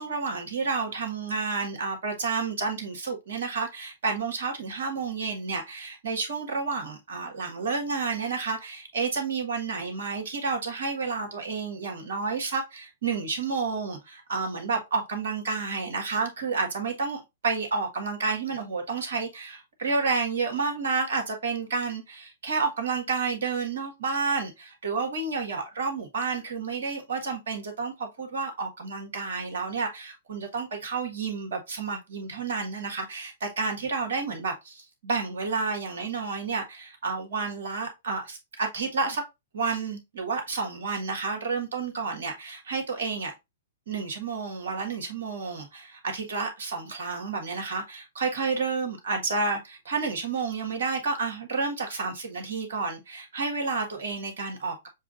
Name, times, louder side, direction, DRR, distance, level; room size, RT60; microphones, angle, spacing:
voice 1, 0.0-39.2 39.5-43.3 43.9-54.9, right 4 dB, 65° right, 1.5 m, -30 dB
7.1 x 2.4 x 2.5 m
figure-of-eight pair, 115°, 0 cm